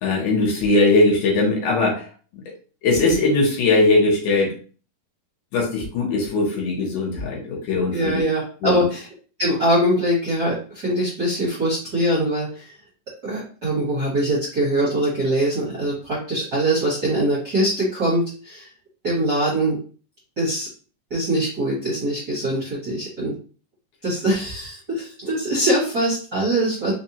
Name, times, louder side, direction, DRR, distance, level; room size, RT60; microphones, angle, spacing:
voice 1, 0.0-2.1 2.8-4.5 5.5-8.2 8.6-8.8, left 2 dB, 70° left, 0 dB, 2.1 m, -20 dB
voice 2, 7.9-9.1 9.4-12.7 13.2-18.7 19.0-19.8 20.4-20.7 21.1-23.3 24.0-26.9, right 1 dB, 45° right, -7 dB, 1.2 m, -22 dB
5.3 x 2.2 x 2.8 m, 0.38 s
omnidirectional pair, 3.9 m